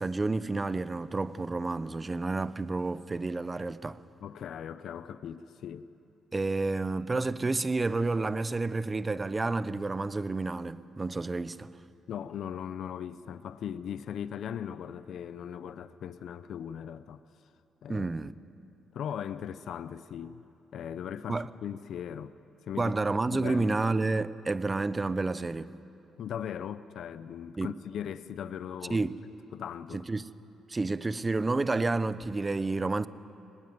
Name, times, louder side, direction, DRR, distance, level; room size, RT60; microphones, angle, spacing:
voice 1, 0.0-4.0 6.3-11.7 17.9-18.3 21.3-21.5 22.8-25.7 27.6-27.7 28.9-29.2 29.9-30.3 30.7-33.1, right 3 dB, 25° right, 0.7 m, -30 dB
voice 2, 4.2-5.9 12.1-17.2 17.8-18.1 18.9-20.4 20.7-22.3 22.6-22.9 23.3-23.8 26.2-29.0 29.5-30.0, left 9 dB, 70° left, 0.7 m, -38 dB
24.0 x 19.5 x 9.4 m
cardioid pair, 90°, 0 cm